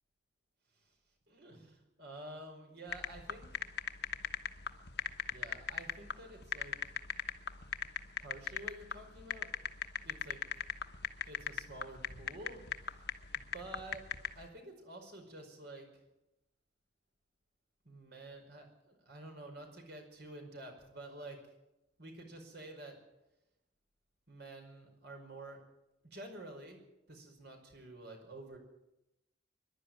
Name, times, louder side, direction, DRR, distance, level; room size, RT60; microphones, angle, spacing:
voice 1, 1.3-3.5 5.3-6.8 8.2-9.5 10.0-10.4 11.3-13.1 13.3-14.1 14.4-15.9 17.9-21.4 22.0-23.0 24.3-25.6 26.0-26.8 27.1-28.6, right 2 dB, 60° right, 3 dB, 5.2 m, -50 dB
sound 1, 2.9-14.4, left 7 dB, 60° left, 1.1 m, -37 dB
24.0 x 11.5 x 9.5 m, 0.93 s
head